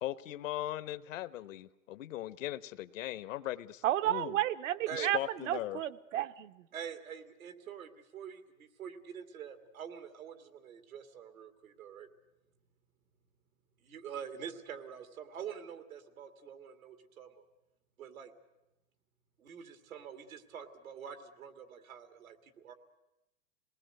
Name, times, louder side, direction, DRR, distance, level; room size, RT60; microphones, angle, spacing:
voice 1, 0.0-4.4 4.9-5.8, left 14 dB, 70° left, 16 dB, 1.0 m, -39 dB
voice 2, 3.8-6.7, right 13 dB, 65° right, 11 dB, 1.0 m, -32 dB
voice 3, 6.7-12.1 13.8-17.5 18.0-18.3 19.4-22.7, right 8 dB, 90° right, 8 dB, 2.5 m, -46 dB
27.0 x 19.5 x 7.9 m, 0.94 s
hypercardioid pair, 125°, 41 cm